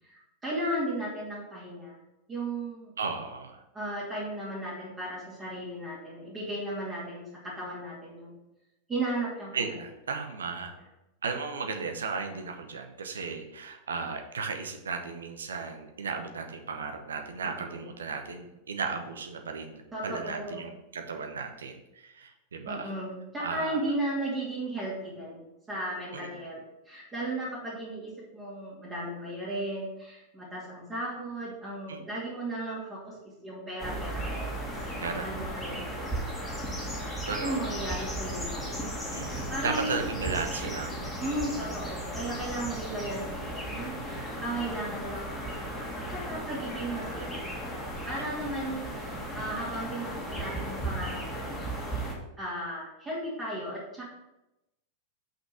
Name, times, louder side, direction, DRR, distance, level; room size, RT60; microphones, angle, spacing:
voice 1, 0.1-2.0 2.3-2.9 3.7-8.4 8.9-9.7 17.4-17.9 19.9-20.7 22.6-33.2 33.4-36.2 37.4-38.7 39.1-40.1 41.2-47.4 47.7-51.8 52.4-54.2, right 1 dB, 20° right, -8 dB, 2.5 m, -36 dB
voice 2, 3.0-3.6 9.5-10.7 11.2-22.9 23.4-23.8 26.1-26.3 31.9-32.0 35.0-35.3 35.7-35.9 37.3-37.8 39.1-41.0, right 5 dB, 70° right, 5 dB, 0.9 m, -35 dB
sound 1, 33.8-52.1, right 1 dB, 10° left, 2.0 m, -35 dB
5.8 x 5.7 x 5.8 m, 0.93 s
figure-of-eight pair, 90°, 0 cm